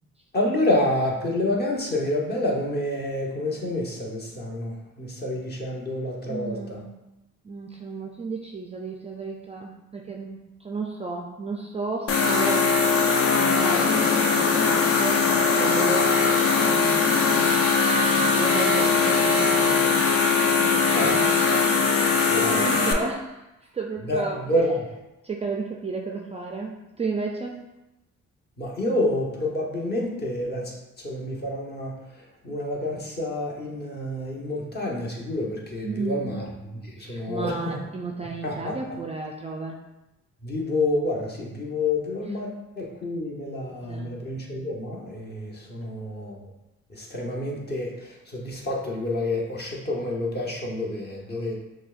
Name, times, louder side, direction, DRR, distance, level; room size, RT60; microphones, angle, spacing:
voice 1, 0.3-6.8 20.9-21.2 22.3-22.7 24.0-24.9 28.6-36.5 36.8-37.8 38.4-39.0 40.4-46.5 46.9-51.6, left 1 dB, 35° left, -2 dB, 1.0 m, -28 dB
voice 2, 6.3-6.9 7.4-13.0 13.3-15.3 15.6-17.6 18.0-20.2 20.6-21.3 22.3-23.4 23.7-24.4 25.2-27.6 35.8-36.4 37.0-39.8 43.9-44.1, right 3 dB, 20° right, 0 dB, 0.3 m, -33 dB
sound 1, 12.1-22.9, left 4 dB, 50° left, 0.6 m, -20 dB
5.9 x 2.2 x 2.4 m, 0.95 s
cardioid pair, 90°, 30 cm